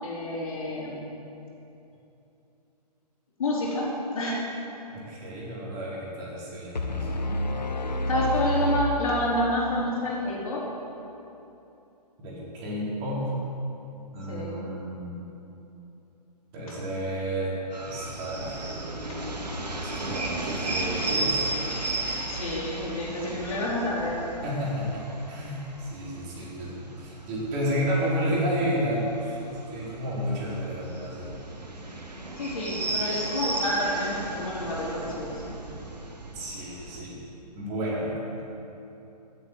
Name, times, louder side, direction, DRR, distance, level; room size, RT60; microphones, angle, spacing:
voice 1, 0.0-1.0 3.4-3.9 4.1-4.4 8.1-10.6 14.3-14.6 21.5-21.6 22.3-24.2 32.4-35.4, left 1 dB, 55° left, -5 dB, 4.4 m, -28 dB
voice 2, 4.9-7.3 12.2-13.3 14.1-15.2 16.5-17.6 17.8-18.7 19.8-21.5 24.4-31.3 36.3-37.2 37.5-38.4, equal, 30° right, -6 dB, 4.2 m, -31 dB
sound 1, 6.7-9.8, equal, 85° left, 1.0 m, -29 dB
sound 2, 17.7-37.0, right 2 dB, 75° right, 2.1 m, -35 dB
16.0 x 8.4 x 8.1 m, 2.9 s
figure-of-eight pair, 130°, 21 cm